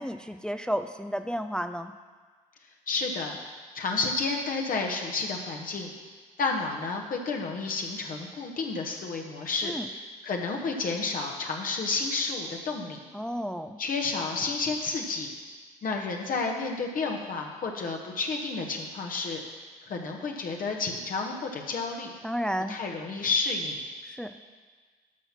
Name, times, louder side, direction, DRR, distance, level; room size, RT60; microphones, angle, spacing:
voice 1, 0.0-1.9 9.6-9.9 13.1-13.8 22.2-22.8 24.0-24.4, equal, 5° left, 8 dB, 0.5 m, -32 dB
voice 2, 2.9-3.4 3.7-5.9 6.4-9.7 10.2-13.0 13.8-15.3 15.8-19.4 19.9-22.1 22.7-23.8, left 4 dB, 50° left, 1 dB, 1.3 m, -31 dB
11.5 x 5.7 x 5.9 m, 1.5 s
hypercardioid pair, 50°, 18 cm